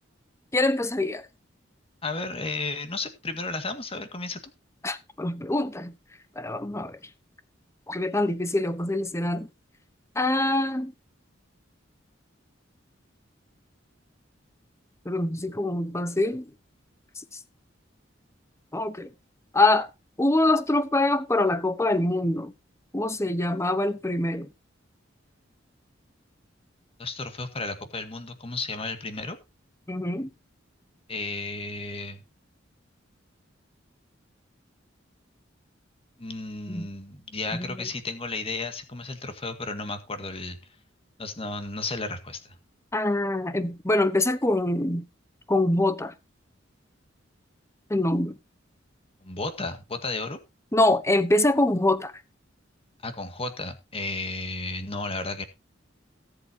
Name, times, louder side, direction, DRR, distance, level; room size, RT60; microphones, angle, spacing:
voice 1, 0.5-1.2 4.8-5.9 6.4-7.0 7.9-9.5 10.2-10.9 15.0-16.5 18.7-19.1 19.5-19.9 20.2-22.5 22.9-24.5 29.9-30.3 36.7-36.9 37.5-37.9 42.9-45.1 45.5-46.1 47.9-48.4 50.7-52.1, left 2 dB, 15° left, 1.0 m, -24 dB
voice 2, 2.0-4.5 27.0-29.4 31.1-32.2 36.2-40.6 41.2-42.6 49.2-50.4 53.0-55.4, left 3 dB, 30° left, 1.9 m, -33 dB
18.0 x 7.9 x 2.8 m
head